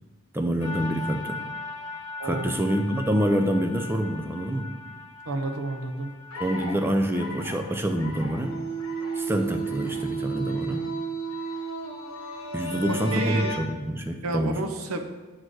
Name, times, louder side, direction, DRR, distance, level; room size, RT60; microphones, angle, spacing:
voice 1, 0.3-1.4 2.2-4.7 6.4-8.5 9.2-10.9 12.5-14.6, equal, 10° right, 5 dB, 0.5 m, -26 dB
sound 1, 0.6-13.6, right 2 dB, 80° left, 1.1 m, -35 dB
voice 2, 2.2-2.6 5.3-6.1 13.1-13.5 14.2-15.0, right 2 dB, 80° right, 5 dB, 0.8 m, -30 dB
7.7 x 4.3 x 4.7 m, 1.3 s
head